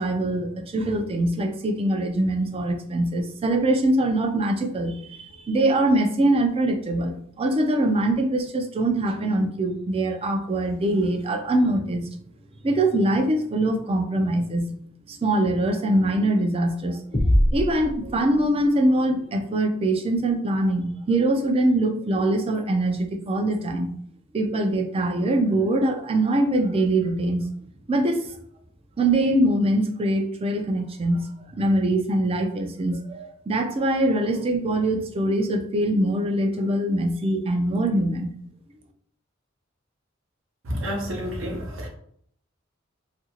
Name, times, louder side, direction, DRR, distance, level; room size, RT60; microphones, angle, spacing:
voice 1, 0.0-12.1 12.6-14.7 15.1-23.9 24.3-27.5 27.9-28.4 29.0-31.3 31.5-38.3, right 1 dB, 30° right, 5 dB, 0.4 m, -23 dB
sound 1, 17.1-18.9, equal, 35° left, 0.6 m, -23 dB
voice 2, 40.6-41.9, equal, 75° right, 0 dB, 0.8 m, -29 dB
2.7 x 2.5 x 2.8 m, 0.65 s
head